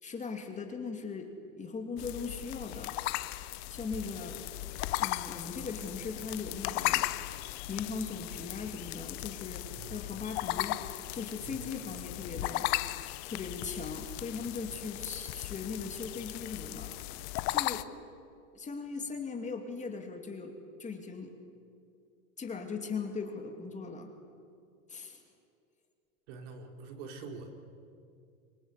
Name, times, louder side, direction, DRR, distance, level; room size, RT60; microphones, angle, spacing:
voice 1, 0.0-2.9 3.7-4.5 5.0-7.1 7.7-10.8 11.1-12.7 13.3-16.9 17.5-17.9 18.5-20.5 20.8-21.3 22.4-24.1 24.9-25.2, left 4 dB, 15° left, 4 dB, 2.8 m, -39 dB
sound 1, 2.0-17.8, left 19 dB, 50° left, 1.0 m, -36 dB
voice 2, 9.7-10.0 11.4-11.6 26.3-27.5, right 4 dB, 55° right, 3 dB, 4.3 m, -45 dB
26.0 x 24.5 x 8.4 m, 2.4 s
hypercardioid pair, 125°, 42 cm